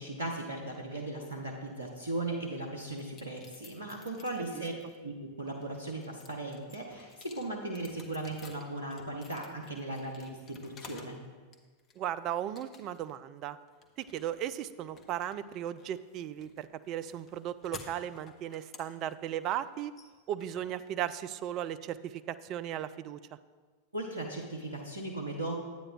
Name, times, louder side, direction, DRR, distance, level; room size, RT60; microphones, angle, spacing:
voice 1, 0.0-4.7 5.0-11.2 23.9-25.5, right 2 dB, 75° right, 0 dB, 0.9 m, -37 dB
sound 1, 3.0-5.0 5.5-11.2 11.5-12.1 12.6-13.2 13.4-21.4, left 4 dB, 30° left, 0.9 m, -54 dB
voice 2, 12.0-13.6 14.0-19.9 20.3-23.2, right 11 dB, 35° right, 13 dB, 0.3 m, -36 dB
10.0 x 8.7 x 2.5 m, 1.4 s
figure-of-eight pair, 90°, 0 cm